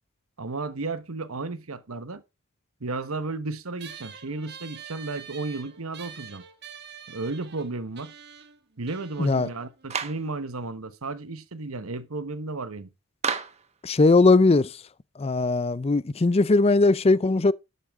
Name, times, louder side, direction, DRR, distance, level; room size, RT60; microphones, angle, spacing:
voice 1, 0.4-2.2 2.8-6.4 7.1-8.1 8.8-12.9, right 3 dB, 85° right, 1.2 m, -33 dB
sound 1, 3.8-10.6, right 8 dB, 50° right, 1.6 m, -46 dB
Clapping, 9.9-10.3 13.2-13.7, right 6 dB, 30° right, 1.1 m, -29 dB
voice 2, 13.8-14.8 15.2-17.5, left 3 dB, 30° left, 0.5 m, -19 dB
12.0 x 8.3 x 3.6 m
head